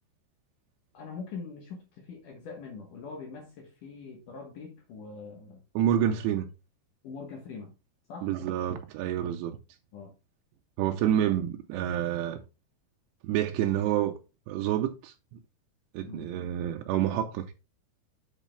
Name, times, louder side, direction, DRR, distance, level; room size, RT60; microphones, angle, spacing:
voice 1, 0.9-5.6 7.0-7.7 8.1-8.3 9.9-10.2 16.0-16.3, left 5 dB, 65° left, 2.2 m, -43 dB
voice 2, 5.8-6.5 8.2-9.6 10.8-12.4 13.2-14.1 14.5-15.1 15.9-17.5, right 11 dB, 85° right, 2.7 m, -28 dB
8.4 x 8.4 x 2.3 m
omnidirectional pair, 5.2 m